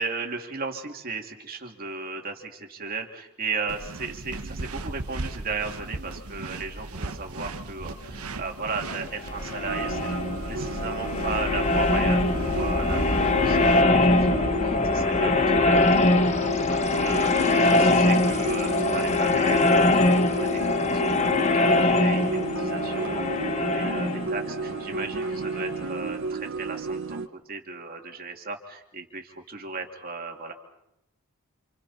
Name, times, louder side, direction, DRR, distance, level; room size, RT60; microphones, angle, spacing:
voice 1, 0.0-10.2 10.4-20.9 21.1-27.2 27.5-30.5, right 4 dB, 40° right, 3 dB, 2.7 m, -36 dB
sound 1, 3.7-13.8, right 2 dB, 85° right, 1.2 m, -37 dB
sound 2, 9.2-25.8, left 2 dB, 30° left, 1.1 m, -23 dB
sound 3, 9.7-27.3, right 4 dB, 60° right, 0.9 m, -33 dB
29.5 x 27.5 x 4.3 m, 0.85 s
head